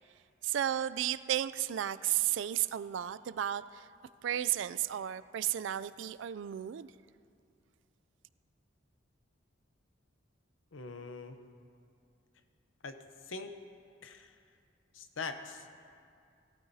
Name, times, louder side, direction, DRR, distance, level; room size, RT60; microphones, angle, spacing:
voice 1, 0.4-3.9 4.2-6.9, right 11 dB, 70° right, 15 dB, 0.3 m, -33 dB
voice 2, 10.7-11.4 12.8-13.0 13.2-13.5 14.0-14.4 14.9-15.7, left 4 dB, 90° left, 8 dB, 0.8 m, -42 dB
17.5 x 12.5 x 2.8 m, 2.3 s
head